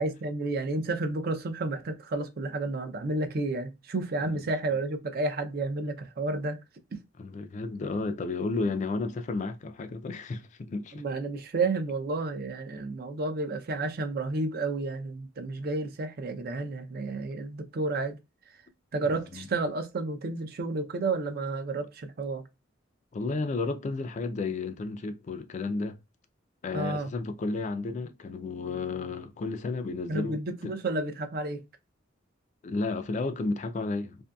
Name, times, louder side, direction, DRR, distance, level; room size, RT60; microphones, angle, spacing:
voice 1, 0.0-6.6 6.9-7.0 10.9-18.2 18.9-22.4 26.7-27.1 30.1-31.6, right 3 dB, 50° right, 0.5 m, -31 dB
voice 2, 7.2-11.0 19.1-19.5 23.1-26.0 26.6-30.4 30.6-30.7 32.6-34.2, left 3 dB, 40° left, 0.3 m, -32 dB
2.6 x 2.6 x 2.2 m
head